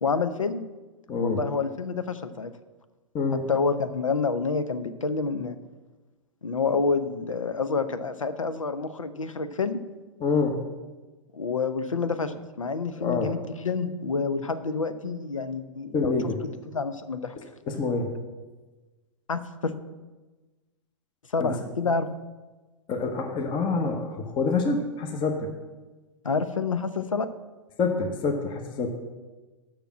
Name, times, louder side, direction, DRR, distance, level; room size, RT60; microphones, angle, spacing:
voice 1, 0.0-0.6 1.2-2.5 3.5-5.6 6.4-9.8 11.3-16.1 16.7-17.3 19.3-19.7 21.3-22.1 26.2-27.3, left 4 dB, 90° left, 12 dB, 0.7 m, -28 dB
voice 2, 1.1-1.4 3.1-3.5 10.2-10.6 13.0-13.3 15.9-16.4 17.7-18.1 21.4-21.5 22.9-25.5 27.8-28.9, left 4 dB, 30° left, 4 dB, 1.0 m, -26 dB
6.9 x 5.9 x 7.4 m, 1.2 s
figure-of-eight pair, 105°, 16 cm